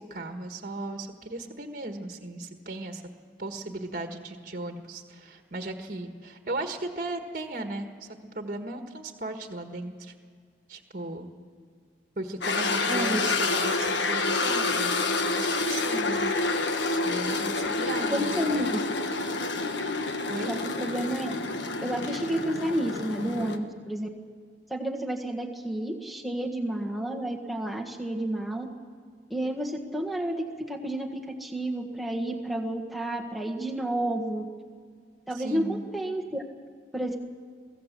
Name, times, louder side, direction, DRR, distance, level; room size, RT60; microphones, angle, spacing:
voice 1, 0.0-3.0 3.4-8.1 8.3-10.1 10.7-11.3 12.2-16.3 17.0-18.7 20.3-20.5 23.2-23.5 35.3-35.8, right 2 dB, 45° right, 5 dB, 1.6 m, -36 dB
sound 1, 12.4-23.6, left 3 dB, 75° left, 1.4 m, -28 dB
voice 2, 12.9-13.2 18.1-18.8 20.5-21.5 21.8-24.1 24.7-28.7 29.3-34.5 35.3-36.4 36.9-37.2, right 1 dB, ahead, 0 dB, 1.6 m, -31 dB
23.5 x 16.0 x 7.5 m, 2.1 s
head